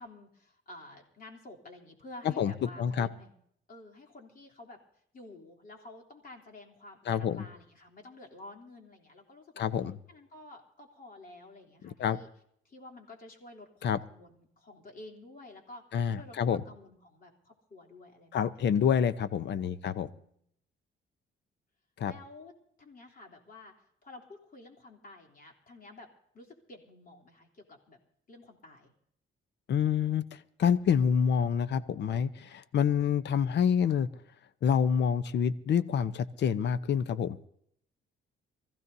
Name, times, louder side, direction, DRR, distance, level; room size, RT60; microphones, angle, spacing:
voice 1, 0.0-3.3 3.7-4.8 5.1-9.7 10.1-12.3 12.6-15.8 16.1-18.8 22.0-22.5 22.8-23.7 24.0-26.1 26.3-28.0 28.3-28.9, left 2 dB, 45° left, 1 dB, 3.3 m, -51 dB
voice 2, 2.4-3.1 7.1-7.4 9.6-10.0 11.8-12.2 13.8-14.0 15.9-16.6 18.3-20.1 22.0-22.1 29.7-30.2 30.6-34.1 34.6-37.4, left 7 dB, 60° left, 15 dB, 0.8 m, -27 dB
25.0 x 15.0 x 2.7 m, 0.69 s
cardioid pair, 90°, 20 cm